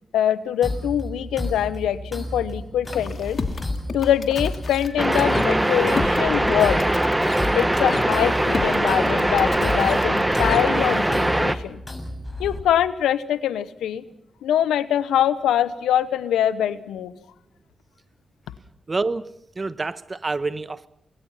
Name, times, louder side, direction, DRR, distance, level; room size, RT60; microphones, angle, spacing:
voice 1, 0.1-3.4 3.9-6.8 7.5-11.8 12.4-14.0 14.4-17.1, left 10 dB, 85° left, 15 dB, 1.0 m, -23 dB
sound 1, 0.6-12.6, left 1 dB, 20° left, 7.0 m, -32 dB
sound 2, 2.8-11.1, left 4 dB, 55° left, 2.7 m, -33 dB
sound 3, 5.0-11.5, right 1 dB, 15° right, 1.7 m, -21 dB
voice 2, 18.9-20.9, right 3 dB, 40° right, 14 dB, 1.3 m, -28 dB
28.5 x 22.0 x 5.7 m, 0.70 s
supercardioid pair, 40°, 0 cm